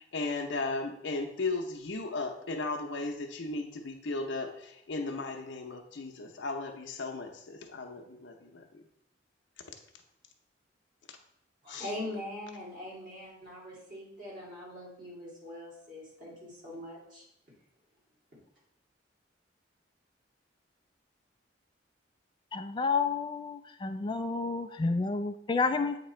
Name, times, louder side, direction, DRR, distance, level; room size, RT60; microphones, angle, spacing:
voice 1, 0.0-8.8 11.7-11.9, left 3 dB, 75° left, 3 dB, 0.7 m, -36 dB
voice 2, 11.6-17.2, left 1 dB, 45° right, -6 dB, 2.4 m, -42 dB
voice 3, 22.5-26.0, left 4 dB, 25° left, 7 dB, 0.3 m, -30 dB
8.2 x 2.9 x 4.3 m, 0.80 s
head